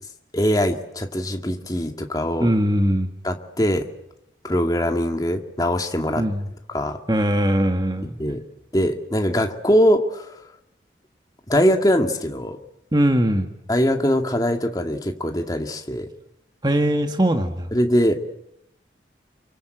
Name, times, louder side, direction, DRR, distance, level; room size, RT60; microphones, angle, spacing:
voice 1, 0.3-2.5 3.2-3.9 4.4-6.2 6.7-7.0 8.2-8.4 8.7-10.3 11.5-12.6 13.7-16.1 17.7-18.1, equal, 20° left, 4 dB, 2.2 m, -21 dB
voice 2, 2.4-3.1 6.2-6.5 7.1-8.2 12.9-13.5 16.6-17.7, right 1 dB, 25° right, 5 dB, 1.6 m, -20 dB
29.5 x 24.0 x 8.0 m, 0.80 s
head